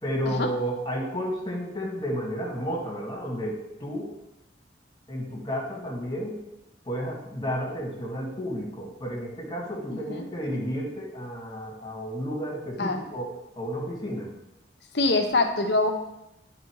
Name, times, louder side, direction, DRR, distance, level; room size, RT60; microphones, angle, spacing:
voice 1, 0.0-4.1 5.1-6.4 6.8-13.3 13.5-14.3, equal, 25° left, -3 dB, 2.0 m, -32 dB
voice 2, 9.9-10.2 12.8-13.0 14.9-15.9, left 2 dB, 70° left, 4 dB, 0.9 m, -24 dB
10.5 x 4.0 x 4.7 m, 0.91 s
head